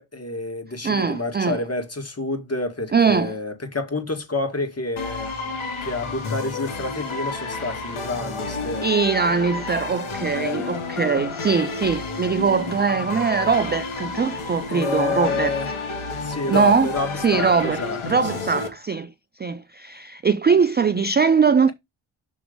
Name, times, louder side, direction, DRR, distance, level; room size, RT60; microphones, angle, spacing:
voice 1, 0.0-5.3 5.8-8.9 10.3-10.7 14.7-15.7 16.2-18.7, left 3 dB, 30° left, 2.0 m, -29 dB
voice 2, 0.8-1.6 2.9-3.3 8.8-15.5 16.5-16.9 17.2-19.1 19.4-21.7, right 5 dB, 25° right, 0.4 m, -21 dB
sound 1, 5.0-18.7, left 3 dB, 80° left, 2.0 m, -31 dB
6.2 x 3.4 x 5.0 m
cardioid pair, 70°, 49 cm